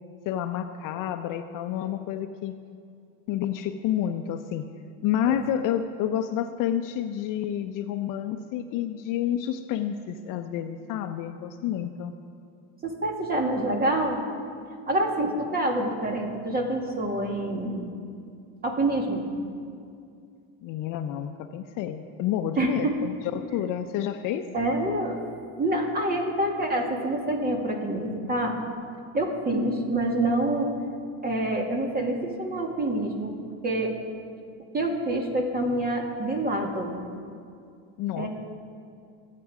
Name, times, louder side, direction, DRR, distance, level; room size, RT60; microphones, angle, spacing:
voice 1, 0.2-2.5 3.3-4.7 5.0-12.1 20.6-24.5 38.0-38.3, left 10 dB, 50° left, 8 dB, 0.8 m, -29 dB
voice 2, 12.8-14.2 14.9-17.9 18.6-19.3 22.6-22.9 24.5-25.2 25.6-28.6 29.1-30.7 31.2-33.3 33.6-34.0 34.7-36.9 38.2-38.3, right 1 dB, 20° right, 2 dB, 2.3 m, -26 dB
23.5 x 8.6 x 5.0 m, 2.3 s
supercardioid pair, 115°, 41 cm